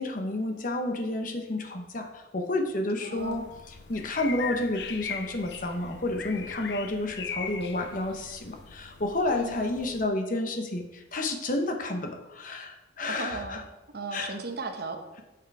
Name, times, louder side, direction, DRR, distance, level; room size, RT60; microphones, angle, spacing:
voice 1, 0.0-13.6 14.1-14.3, left 2 dB, 45° left, 5 dB, 0.9 m, -30 dB
voice 2, 3.0-3.4 9.3-9.6 13.1-13.7 13.9-15.2, right 3 dB, 55° right, 5 dB, 0.9 m, -36 dB
sound 1, 3.2-10.1, left 6 dB, 65° left, 0.6 m, -40 dB
6.2 x 5.9 x 4.8 m, 1.0 s
head